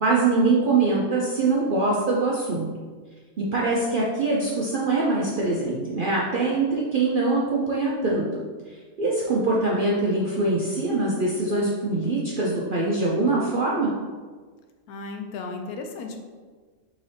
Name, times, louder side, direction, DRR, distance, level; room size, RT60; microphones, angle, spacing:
voice 1, 0.0-2.7 3.4-8.4 8.7-13.9, right 3 dB, 65° right, -4 dB, 0.5 m, -23 dB
voice 2, 14.9-16.2, left 3 dB, 90° left, 4 dB, 1.1 m, -34 dB
4.0 x 3.8 x 3.2 m, 1.5 s
omnidirectional pair, 1.5 m